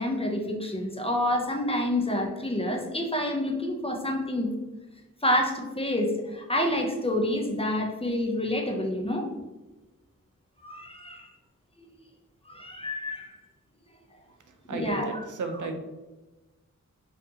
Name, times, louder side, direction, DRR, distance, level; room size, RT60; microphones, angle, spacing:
voice 1, 0.0-4.5 5.2-9.3 10.6-11.3 12.5-13.3 14.7-15.2, left 1 dB, 20° left, 2 dB, 0.6 m, -28 dB
voice 2, 14.7-15.8, right 3 dB, 70° right, 5 dB, 0.6 m, -33 dB
4.8 x 2.6 x 2.8 m, 1.1 s
wide cardioid pair, 95°, 32 cm